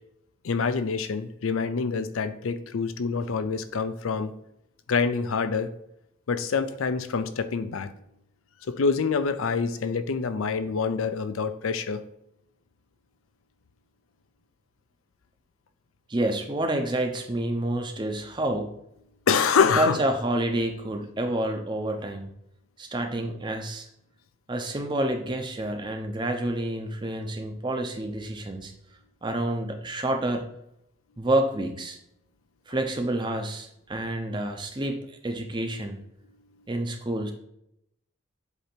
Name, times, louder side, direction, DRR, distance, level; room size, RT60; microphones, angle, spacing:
voice 1, 0.4-4.3 4.9-5.7 6.3-7.9 8.7-12.0 19.3-20.0, left 5 dB, 80° left, 11 dB, 0.5 m, -26 dB
voice 2, 16.1-18.8 19.8-22.3 22.8-23.9 24.5-28.7 29.2-30.4 31.2-32.0 32.7-36.0 36.7-37.3, right 1 dB, 20° right, 5 dB, 0.6 m, -28 dB
8.1 x 2.9 x 4.4 m, 0.77 s
head